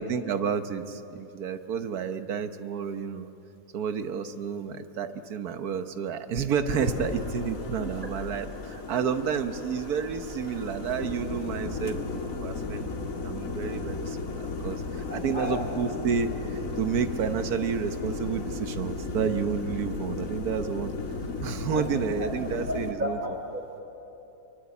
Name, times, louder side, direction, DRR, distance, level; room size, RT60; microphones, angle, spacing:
voice 1, 0.0-3.3 3.7-20.9 21.4-23.2, right 7 dB, 70° right, 9 dB, 1.5 m, -30 dB
sound 1, 6.7-22.9, left 3 dB, 55° left, 2.2 m, -35 dB
voice 2, 15.1-15.6 21.7-21.8 22.2-22.3 22.7-23.8, left 1 dB, 30° right, 2 dB, 4.2 m, -33 dB
27.0 x 23.0 x 8.4 m, 2.9 s
omnidirectional pair, 1.7 m